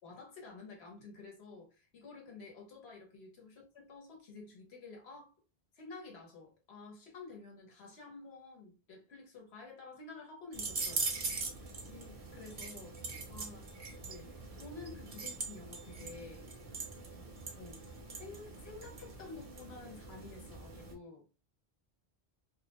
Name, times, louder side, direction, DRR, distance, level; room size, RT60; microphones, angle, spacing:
voice 1, 0.0-5.3 5.7-11.1 11.6-13.0 13.3-13.6 14.0-16.5 17.6-17.8 18.2-21.2, left 4 dB, 85° left, 1.2 m, -51 dB
sound 1, 10.5-20.9, right 3 dB, 45° right, 0.5 m, -42 dB
2.4 x 2.0 x 2.8 m
omnidirectional pair, 1.1 m